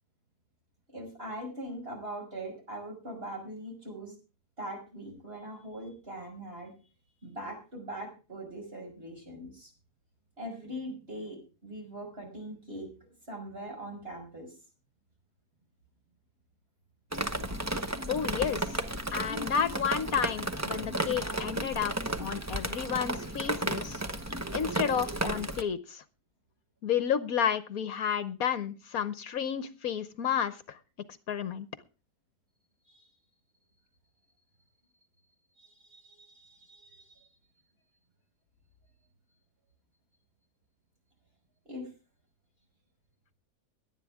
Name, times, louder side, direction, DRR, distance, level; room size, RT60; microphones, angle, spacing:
voice 1, 0.9-4.1 4.6-6.7 7.2-9.7 10.4-12.9 13.3-14.6 32.9-33.0 35.6-37.3 41.6-41.9, right 1 dB, 35° right, 2 dB, 6.1 m, -41 dB
Drip, 17.1-25.6, right 1 dB, 15° right, 0.7 m, -33 dB
voice 2, 18.1-18.8 19.1-21.9 22.2-24.0 24.5-26.0 26.8-30.8 31.3-31.7, left 8 dB, 65° left, 13 dB, 1.3 m, -31 dB
18.0 x 11.0 x 3.6 m, 0.34 s
omnidirectional pair, 1.7 m